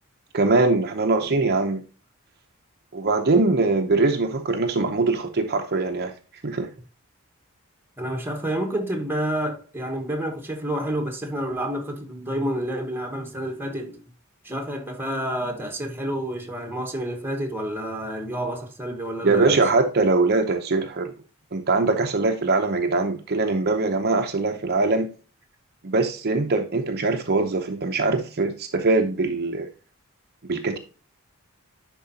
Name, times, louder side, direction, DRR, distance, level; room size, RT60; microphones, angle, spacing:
voice 1, 0.3-1.8 2.9-6.1 6.4-6.7 19.2-21.1 21.5-25.1 25.8-29.7 30.4-30.8, right 3 dB, 50° right, 0.8 m, -22 dB
voice 2, 8.0-14.0 14.4-19.6, right 1 dB, 10° right, 1.3 m, -29 dB
10.5 x 4.5 x 2.8 m
head